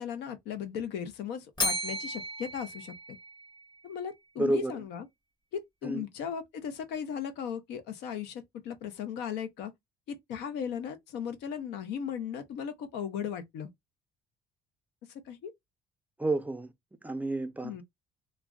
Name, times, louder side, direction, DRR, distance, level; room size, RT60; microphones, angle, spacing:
voice 1, 0.0-2.9 3.8-5.1 5.5-9.7 10.1-13.7 15.3-15.5 17.6-17.8, left 8 dB, 85° left, 0.6 m, -37 dB
Bell, 1.6-3.8, left 1 dB, 25° left, 1.0 m, -34 dB
voice 2, 4.4-4.7 5.8-6.0 16.2-16.7 17.0-17.8, right 2 dB, 10° right, 0.4 m, -30 dB
2.3 x 2.0 x 3.5 m
cardioid pair, 110°, 17 cm